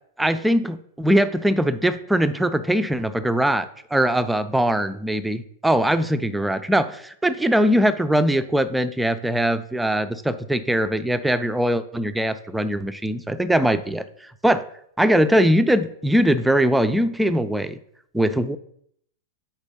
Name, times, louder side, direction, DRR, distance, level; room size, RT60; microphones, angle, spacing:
voice 1, 0.2-14.0 14.4-14.6 15.0-17.8 18.1-18.6, right 1 dB, 5° right, 11 dB, 0.4 m, -21 dB
4.5 x 4.0 x 5.4 m, 0.68 s
hypercardioid pair, 130°, 0 cm